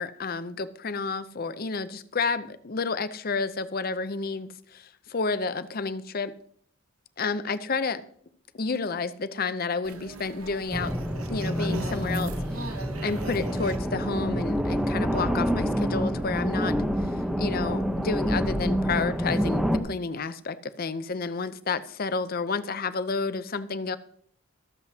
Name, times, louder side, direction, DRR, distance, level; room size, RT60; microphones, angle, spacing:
voice 1, 0.0-6.3 7.2-8.0 8.5-10.9 11.3-12.3 12.6-24.0, left 4 dB, 45° left, 0.6 m, -30 dB
sound 1, 9.8-15.0, right 3 dB, 80° right, 1.2 m, -41 dB
sound 2, 10.7-19.8, equal, 5° right, 0.9 m, -27 dB
23.5 x 7.9 x 2.8 m
head